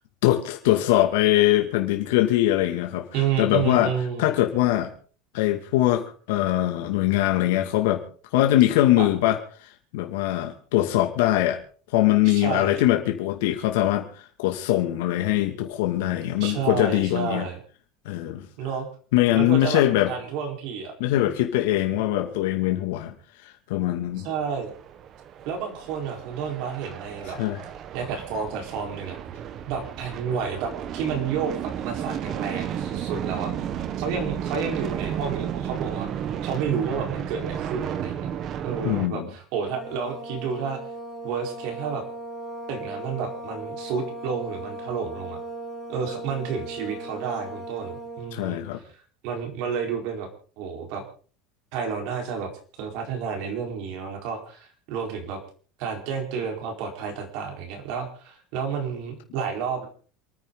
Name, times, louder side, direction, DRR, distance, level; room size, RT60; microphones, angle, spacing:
voice 1, 0.2-3.1 3.4-3.9 4.2-4.9 5.3-8.0 8.3-9.4 9.9-11.6 11.9-17.5 18.1-18.5 19.1-20.1 21.0-23.1 23.4-24.3 27.4-27.6 38.8-39.3 48.3-48.8, left 14 dB, 75° left, 3 dB, 2.3 m, -22 dB
voice 2, 3.1-4.4 9.0-9.1 12.0-12.8 16.4-17.6 18.6-18.9 19.3-20.9 22.2-22.3 24.2-24.7 25.4-27.4 27.9-29.1 29.7-33.5 34.0-36.1 36.4-38.3 38.6-40.8 41.2-42.0 42.7-45.4 45.9-48.8 49.2-50.3 50.6-51.0 51.7-52.5 52.8-55.4 55.8-59.9, right 6 dB, 50° right, 3 dB, 4.4 m, -30 dB
sound 1, 24.3-39.1, right 9 dB, 30° right, 1.1 m, -33 dB
sound 2, 39.7-48.4, right 2 dB, 15° right, 2.5 m, -37 dB
28.0 x 9.7 x 4.0 m, 0.42 s
cardioid pair, 175°, 0 cm